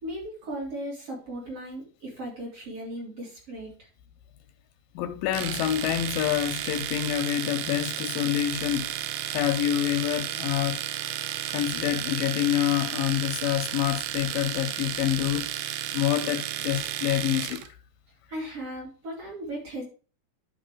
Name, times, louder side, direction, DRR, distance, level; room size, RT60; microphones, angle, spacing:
voice 1, 0.0-3.7 18.3-19.8, right 1 dB, 40° right, 3.9 m, -37 dB
voice 2, 5.0-8.9 9.3-10.8 11.5-15.5 15.9-17.8, left 12 dB, 80° left, 2.2 m, -27 dB
Domestic sounds home sounds, 5.3-17.7, right 12 dB, 80° right, 1.9 m, -33 dB
11.5 x 4.0 x 4.8 m
omnidirectional pair, 4.2 m